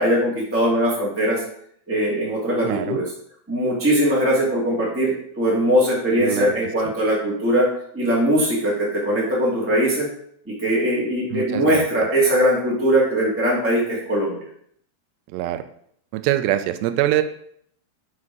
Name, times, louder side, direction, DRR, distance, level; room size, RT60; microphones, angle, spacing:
voice 1, 0.0-1.4 1.9-3.1 3.5-7.7 7.9-10.1 10.5-14.4, equal, 10° right, -6 dB, 0.6 m, -20 dB
voice 2, 2.6-3.0 6.2-6.6 11.3-11.9 15.3-15.6 16.1-17.2, right 14 dB, 80° right, 10 dB, 2.7 m, -23 dB
9.5 x 5.4 x 4.8 m, 0.66 s
omnidirectional pair, 5.0 m